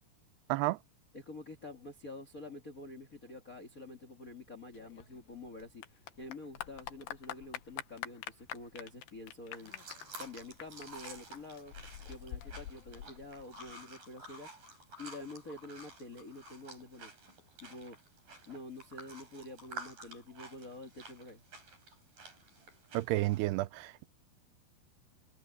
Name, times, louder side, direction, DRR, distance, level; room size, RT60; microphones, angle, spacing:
voice 1, 1.1-9.9 10.2-11.7 12.1-14.5 15.0-17.1 17.6-18.0 18.5-21.4, left 2 dB, 40° left, 1.2 m, -48 dB
Clapping / Applause, 4.7-13.7, left 12 dB, 85° left, 3.3 m, -46 dB
sound 1, 9.5-23.5, right 2 dB, 55° right, 9.4 m, -51 dB
voice 2, 22.9-24.1, right 19 dB, 85° right, 2.6 m, -31 dB
omnidirectional pair, 4.7 m